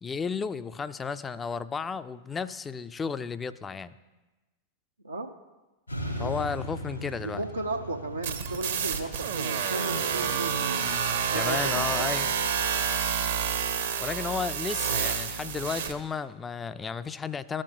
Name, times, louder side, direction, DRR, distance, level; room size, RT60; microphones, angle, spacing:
voice 1, 0.0-4.0 6.2-7.4 11.3-12.3 14.0-17.6, left 5 dB, 15° left, 14 dB, 0.3 m, -33 dB
sound 1, 5.9-12.9, right 1 dB, 90° left, 2.6 m, -40 dB
voice 2, 7.2-10.5 11.3-12.1, right 2 dB, 80° right, 2 dB, 0.5 m, -35 dB
sound 2, 8.2-15.9, right 7 dB, 60° right, 0.8 m, -29 dB
14.5 x 5.3 x 2.9 m, 1.1 s
figure-of-eight pair, 90°, 0 cm